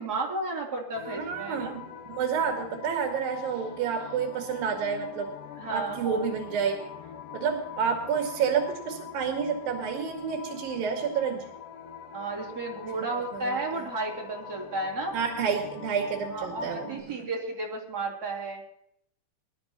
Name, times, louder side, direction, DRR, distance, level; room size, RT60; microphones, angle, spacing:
voice 1, 0.0-1.8 5.6-6.3 12.1-15.2 16.3-18.6, right 2 dB, 25° right, -2 dB, 3.3 m, -33 dB
sound 1, 0.9-17.0, left 8 dB, 65° left, 2.8 m, -44 dB
voice 2, 1.1-5.3 5.7-6.9 7.3-11.5 12.9-13.9 15.1-17.3, right 6 dB, 65° right, 2 dB, 3.6 m, -30 dB
24.0 x 11.5 x 3.0 m, 0.74 s
omnidirectional pair, 4.5 m